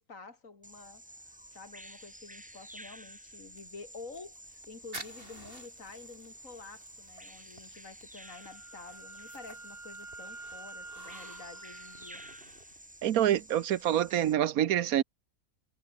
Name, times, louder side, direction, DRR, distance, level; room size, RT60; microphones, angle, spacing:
voice 1, 0.0-12.2, left 4 dB, 65° left, 3.3 m, -49 dB
Bird vocalization bird call bird song, 0.6-14.3, right 1 dB, 5° right, 1.8 m, -51 dB
sound 1, 4.4-13.1, right 2 dB, 40° right, 5.2 m, -52 dB
Wind instrument woodwind instrument, 8.2-12.4, right 2 dB, 20° right, 1.7 m, -48 dB
voice 2, 13.0-15.0, right 11 dB, 80° right, 1.3 m, -26 dB
omnidirectional pair, 1.5 m